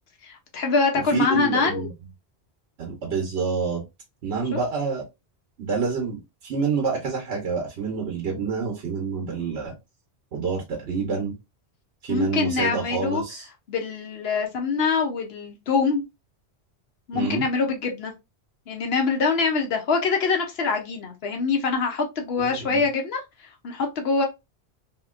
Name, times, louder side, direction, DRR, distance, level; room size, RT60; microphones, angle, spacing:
voice 1, 0.2-1.9 12.1-13.2 13.7-16.0 17.1-18.1 18.7-23.2 23.6-24.2, left 4 dB, 70° left, 0.9 m, -24 dB
voice 2, 1.1-1.9 2.8-3.8 4.2-5.0 5.6-9.7 10.3-11.3 12.0-13.5 17.1-17.4 22.4-22.8, right 5 dB, 80° right, 1.1 m, -27 dB
2.9 x 2.8 x 2.4 m
omnidirectional pair, 1.1 m